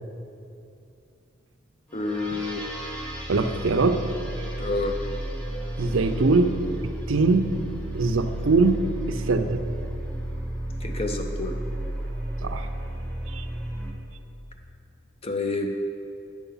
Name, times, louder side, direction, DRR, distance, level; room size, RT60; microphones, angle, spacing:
voice 1, 1.9-2.6 4.6-4.9 10.8-11.6 15.2-15.8, left 3 dB, 30° left, 4 dB, 0.5 m, -28 dB
sound 1, 1.9-13.9, right 1 dB, 5° left, 1.0 m, -33 dB
voice 2, 3.3-4.0 5.8-6.5 6.8-7.6 7.9-9.6 12.4-12.7 13.3-13.4, right 3 dB, 70° right, 8 dB, 0.6 m, -22 dB
9.2 x 7.0 x 5.5 m, 2.6 s
head